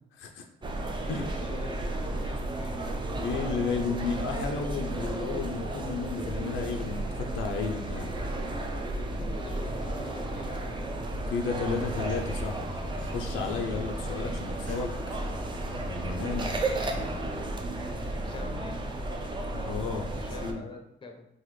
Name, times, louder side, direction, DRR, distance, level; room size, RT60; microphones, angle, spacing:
voice 1, 0.1-0.4 1.1-1.3 3.2-8.1 11.2-12.8 13.1-14.9 15.8-16.5 19.5-20.6, left 5 dB, 80° left, 3 dB, 0.6 m, -33 dB
sound 1, 0.6-20.5, right 2 dB, 25° right, 0.5 m, -33 dB
voice 2, 1.0-3.0 9.2-10.9 18.1-18.8 20.1-21.3, left 3 dB, 25° left, 4 dB, 0.6 m, -44 dB
sound 2, 7.9-11.5, equal, 60° right, 1.0 m, -46 dB
sound 3, 11.9-17.4, left 1 dB, 40° right, 1.3 m, -43 dB
3.9 x 2.5 x 3.1 m, 0.81 s
cardioid pair, 90°, 20 cm